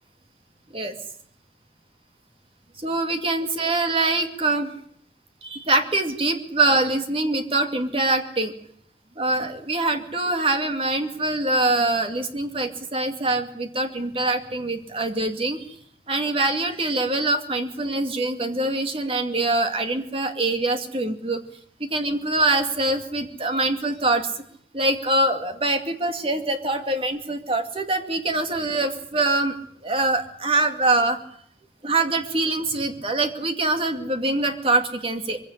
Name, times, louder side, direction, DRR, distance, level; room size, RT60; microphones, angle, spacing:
voice 1, 2.8-4.7 5.4-8.5 9.2-15.6 16.1-21.4 21.8-24.3 24.7-29.6 29.8-31.2 31.8-35.4, right 2 dB, 30° right, 6 dB, 2.5 m, -24 dB
23.0 x 16.5 x 10.0 m, 0.64 s
head